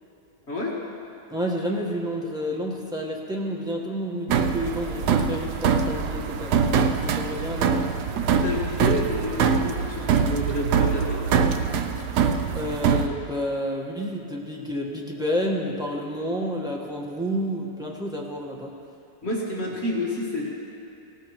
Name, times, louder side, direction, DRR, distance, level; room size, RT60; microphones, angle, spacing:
voice 1, 1.3-6.6 7.0-7.9 12.5-18.7, equal, 5° right, -2 dB, 1.1 m, -30 dB
sound 1, 4.3-13.1, right 6 dB, 85° right, 1.2 m, -23 dB
voice 2, 8.3-11.2 19.2-20.5, left 2 dB, 45° left, -4 dB, 1.8 m, -29 dB
17.5 x 13.5 x 3.1 m, 2.8 s
omnidirectional pair, 1.7 m